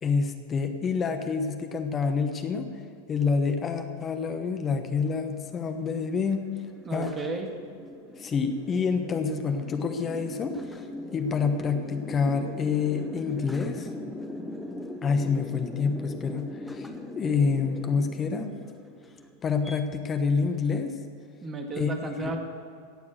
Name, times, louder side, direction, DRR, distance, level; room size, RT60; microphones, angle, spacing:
voice 1, 0.0-2.7 3.1-6.4 6.9-7.1 8.2-10.8 11.1-13.9 15.0-16.9 17.2-18.5 19.4-20.9 21.8-21.9 22.2-22.4, left 5 dB, 25° left, 6 dB, 1.1 m, -27 dB
sound 1, 3.9-19.8, left 1 dB, ahead, 1.0 m, -40 dB
voice 2, 6.9-7.5 21.4-22.4, right 3 dB, 20° right, 3 dB, 1.7 m, -33 dB
17.5 x 7.3 x 8.2 m, 2.3 s
figure-of-eight pair, 90°, 0 cm